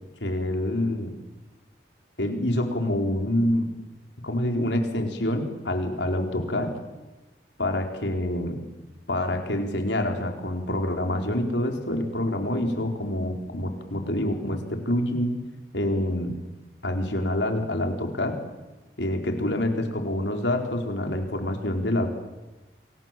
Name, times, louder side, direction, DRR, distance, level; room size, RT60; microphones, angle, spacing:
voice 1, 0.2-1.1 2.2-3.7 4.2-6.7 7.6-8.6 9.1-15.4 15.7-16.4 16.8-18.4 19.0-22.1, left 1 dB, 85° left, 4 dB, 4.5 m, -26 dB
29.5 x 25.0 x 7.7 m, 1.1 s
head